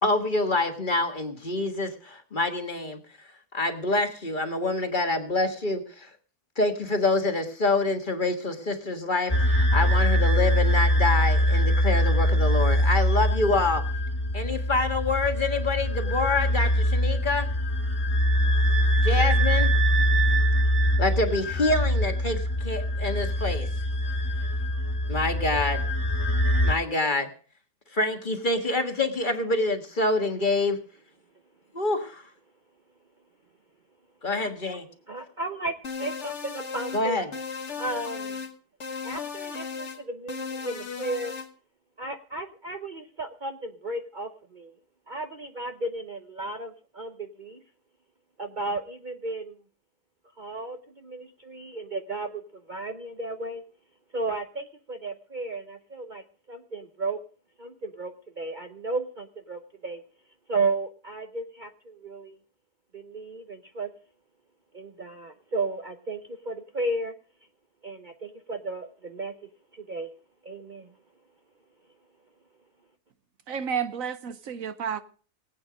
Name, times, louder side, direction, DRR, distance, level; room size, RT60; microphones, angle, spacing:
voice 1, 0.0-3.0 3.5-6.1 6.6-13.8 14.3-17.5 19.0-19.7 21.0-23.7 25.1-25.8 26.6-27.3 27.9-30.8 31.7-32.2 34.2-34.9 36.9-37.3, left 2 dB, 35° left, 1.6 m, -26 dB
sound 1, 9.3-26.7, equal, 15° left, 2.1 m, -23 dB
voice 2, 35.1-37.2 37.8-38.4 39.0-41.3 42.0-44.7 45.1-47.6 48.4-49.6 50.4-53.6 54.1-56.2 56.5-57.2 57.6-60.0 60.5-62.4 62.9-63.9 64.7-67.1 67.8-69.3 69.7-70.1 70.4-70.9, right 2 dB, 40° right, 0.9 m, -34 dB
sound 2, 35.8-37.0 37.3-38.5 38.8-40.0 40.3-41.5, left 5 dB, 50° left, 1.5 m, -36 dB
voice 3, 73.5-75.0, right 7 dB, 70° right, 1.2 m, -31 dB
19.5 x 8.6 x 4.9 m
omnidirectional pair, 1.5 m